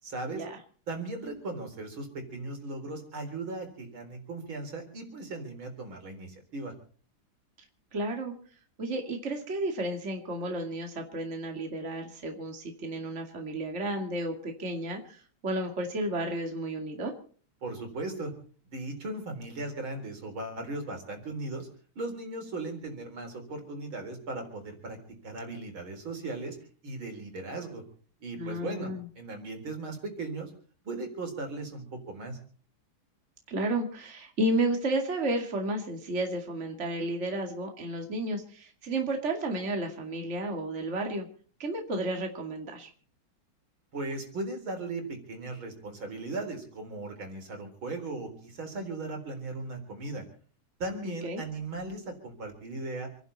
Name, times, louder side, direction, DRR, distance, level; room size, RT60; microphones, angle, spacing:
voice 1, 0.0-0.4 0.9-6.7 17.6-18.3 18.7-21.7 22.0-25.0 25.2-26.6 26.8-27.8 28.2-28.9 29.2-30.5 30.8-32.4 43.9-50.2 50.8-53.1, right 2 dB, 75° right, 4 dB, 4.7 m, -37 dB
voice 2, 7.9-8.3 8.8-17.1 28.4-29.0 33.5-41.3 41.6-42.9 51.0-51.4, right 1 dB, 35° right, 3 dB, 2.6 m, -32 dB
28.0 x 11.0 x 4.2 m, 0.43 s
omnidirectional pair, 2.2 m